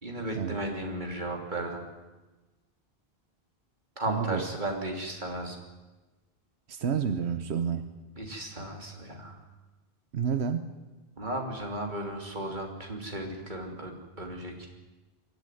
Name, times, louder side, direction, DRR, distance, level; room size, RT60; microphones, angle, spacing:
voice 1, 0.0-1.8 4.0-5.6 8.2-9.4 11.2-14.7, right 1 dB, 45° right, 2 dB, 3.3 m, -35 dB
voice 2, 4.0-4.5 6.7-7.9 10.1-10.7, right 7 dB, 90° right, 10 dB, 1.2 m, -29 dB
22.5 x 13.5 x 9.3 m, 1.2 s
omnidirectional pair, 1.1 m